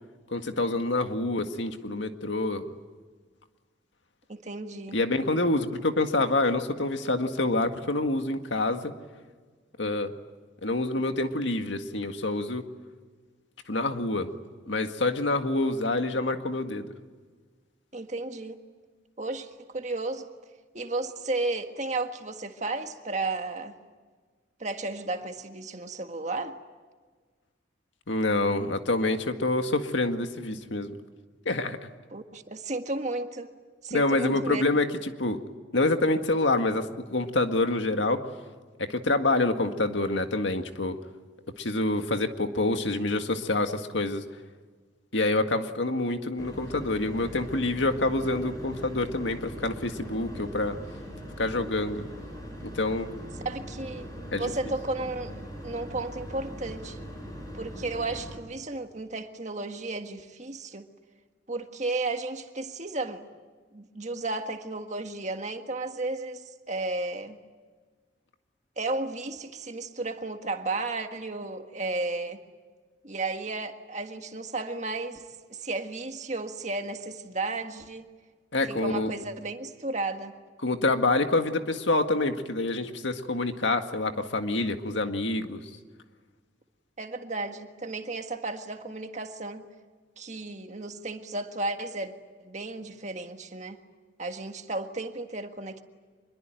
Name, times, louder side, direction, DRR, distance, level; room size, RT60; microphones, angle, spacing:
voice 1, 0.3-2.7 4.9-8.9 9.8-10.1 10.6-12.6 13.7-14.3 14.7-16.9 28.1-30.9 31.5-31.8 33.9-35.4 35.7-38.2 38.8-41.0 41.6-44.2 45.1-50.8 51.4-52.0 52.6-53.1 54.3-54.5 78.5-79.1 80.6-85.6, left 2 dB, 70° left, 1.9 m, -27 dB
voice 2, 4.3-5.0 17.9-18.6 19.2-20.3 20.7-23.7 24.6-26.6 32.1-33.5 33.8-34.6 53.4-54.1 54.3-55.3 55.6-57.0 57.5-60.9 61.5-63.2 63.7-67.4 68.8-72.4 73.0-78.1 78.7-80.4 87.0-89.6 90.2-92.1 92.4-93.8 94.2-95.8, right 2 dB, 35° right, 1.7 m, -33 dB
sound 1, 46.4-58.4, equal, 20° left, 6.3 m, -41 dB
25.5 x 22.5 x 9.1 m
head